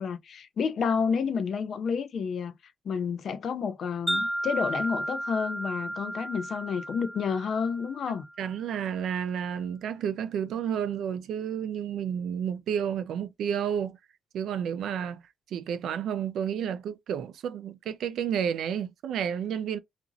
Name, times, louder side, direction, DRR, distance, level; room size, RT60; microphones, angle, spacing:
voice 1, 0.0-8.2, left 6 dB, 60° left, 0.4 m, -30 dB
Wind chime, 4.1-8.4, right 1 dB, 15° right, 0.8 m, -33 dB
voice 2, 8.4-14.0 14.3-15.2 15.5-19.8, right 8 dB, 80° right, 0.4 m, -31 dB
2.8 x 2.5 x 2.5 m
cardioid pair, 95°, 0 cm